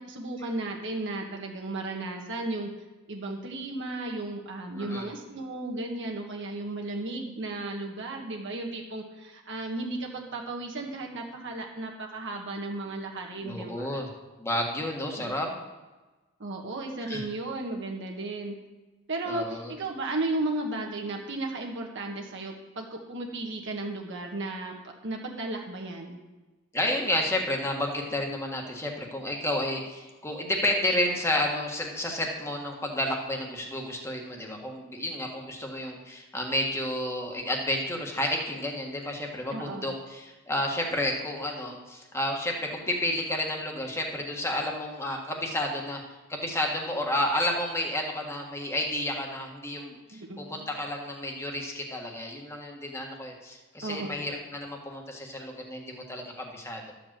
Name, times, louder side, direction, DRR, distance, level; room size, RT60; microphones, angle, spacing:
voice 1, 0.1-2.7 3.1-14.0 15.2-15.3 16.4-18.5 19.1-24.7 25.0-26.2 34.6-35.0 39.5-39.9 50.1-50.8 53.8-54.3, right 2 dB, 60° right, 0 dB, 1.5 m, -34 dB
voice 2, 4.7-5.1 13.4-14.1 14.4-15.5 17.1-17.2 19.3-19.7 26.7-46.0 46.3-57.0, left 1 dB, 15° left, 0 dB, 1.6 m, -31 dB
11.5 x 5.0 x 7.5 m, 1.2 s
head